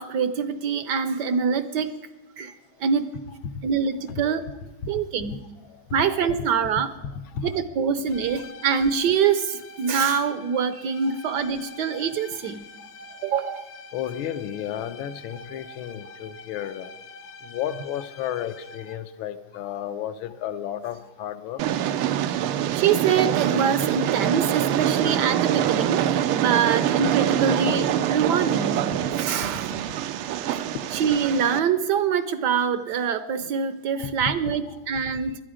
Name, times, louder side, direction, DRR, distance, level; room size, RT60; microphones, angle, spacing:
voice 1, 0.0-1.9 2.4-3.1 3.6-4.4 4.9-5.4 5.9-6.9 7.4-12.7 13.2-13.6 22.7-28.8 29.2-29.8 30.5-30.6 30.9-35.4, right 7 dB, 65° right, 12 dB, 1.1 m, -24 dB
voice 2, 5.7-6.1 7.0-7.6 11.1-11.2 12.8-12.9 13.2-13.3 13.9-16.9 17.4-21.7 29.4-29.8 30.4-30.8 33.9-34.1, left 9 dB, 75° left, 10 dB, 1.5 m, -33 dB
sound 1, 8.1-19.2, left 2 dB, 60° left, 0.7 m, -45 dB
Train, 21.6-31.6, right 11 dB, 90° right, 1.6 m, -25 dB
20.5 x 12.0 x 5.0 m, 1.1 s
omnidirectional pair, 2.3 m